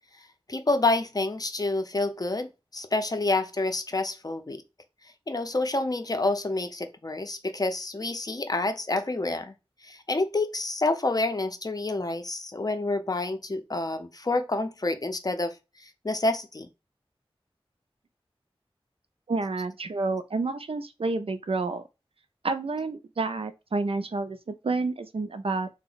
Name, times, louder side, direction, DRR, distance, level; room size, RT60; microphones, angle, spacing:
voice 1, 0.5-2.5 2.7-4.6 5.3-9.5 9.8-16.7, left 2 dB, 40° left, 0.5 m, -28 dB
voice 2, 19.3-21.8 22.4-25.7, right 3 dB, 70° right, 0.4 m, -29 dB
2.8 x 2.1 x 3.9 m
wide cardioid pair, 60°, 10 cm